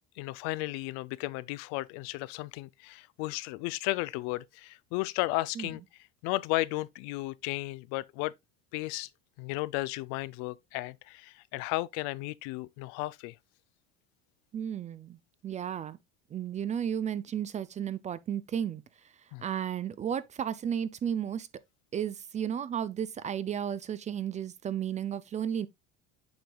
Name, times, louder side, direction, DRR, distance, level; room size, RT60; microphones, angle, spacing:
voice 1, 0.2-5.8 6.2-8.3 8.7-9.1 9.4-13.4 19.3-19.4, left 20 dB, 65° left, 0.5 m, -34 dB
voice 2, 14.5-15.2 15.4-16.0 16.3-18.8 19.4-21.5 21.9-25.7, right 9 dB, 25° right, 0.4 m, -33 dB
7.9 x 5.2 x 2.3 m
supercardioid pair, 105°, 30 cm